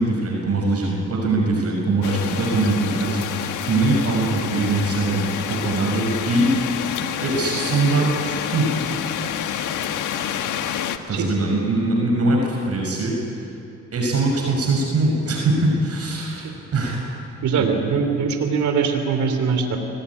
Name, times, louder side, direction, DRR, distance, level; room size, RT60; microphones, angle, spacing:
voice 1, 0.0-6.5 7.2-8.7 11.1-13.2 13.9-17.1 17.6-17.7, right 2 dB, 55° right, -1 dB, 6.2 m, -22 dB
sound 1, 2.0-11.0, left 9 dB, 80° left, 1.5 m, -28 dB
voice 2, 17.4-19.8, right 5 dB, 70° right, 5 dB, 3.4 m, -21 dB
24.5 x 19.5 x 9.8 m, 2.6 s
cardioid pair, 90°, 30 cm